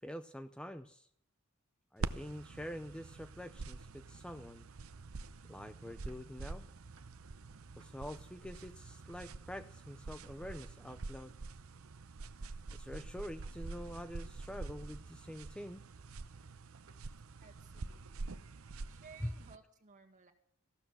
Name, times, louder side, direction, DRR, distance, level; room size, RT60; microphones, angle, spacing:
voice 1, 0.0-1.1 1.9-4.7 5.5-6.6 7.8-11.3 12.7-15.8 19.2-19.3, equal, 5° left, 9 dB, 0.5 m, -46 dB
sound 1, 2.0-19.6, right 3 dB, 85° right, 0.7 m, -46 dB
sound 2, 2.5-4.5 4.8-10.6 10.9-12.1 13.0-14.8 16.7-17.0 17.4-17.6 17.9-18.6, right 3 dB, 65° right, 1.5 m, -68 dB
voice 2, 17.4-18.4 18.9-20.3, right 4 dB, 40° right, 3 dB, 1.9 m, -58 dB
15.0 x 12.5 x 6.2 m, 0.69 s
head